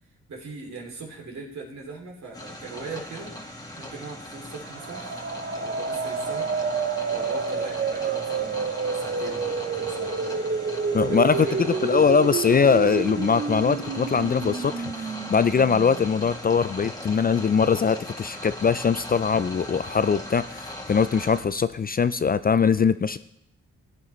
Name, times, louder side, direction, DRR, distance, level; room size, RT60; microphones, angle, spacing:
voice 1, 0.3-3.3 3.8-10.4 11.0-12.1, right 4 dB, 65° right, 0 dB, 2.9 m, -40 dB
sound 1, 2.3-21.4, left 1 dB, 10° left, 1.8 m, -39 dB
sound 2, 4.6-16.3, right 5 dB, 35° right, 0.8 m, -29 dB
voice 2, 10.9-11.4 11.8-20.6 20.9-23.2, left 6 dB, 30° left, 14 dB, 0.4 m, -22 dB
16.5 x 8.5 x 3.1 m, 0.75 s
cardioid pair, 65°, 30 cm